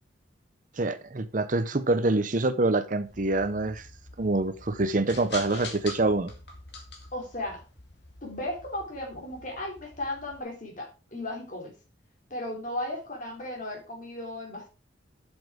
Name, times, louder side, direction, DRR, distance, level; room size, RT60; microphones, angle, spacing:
voice 1, 0.7-3.9 4.2-6.3, right 2 dB, 40° right, 0.7 m, -26 dB
sound 1, 3.0-10.4, left 3 dB, 55° left, 2.3 m, -45 dB
voice 2, 7.1-7.6 8.2-11.7 12.3-14.7, left 1 dB, 40° left, 3.2 m, -35 dB
7.8 x 7.2 x 4.9 m
head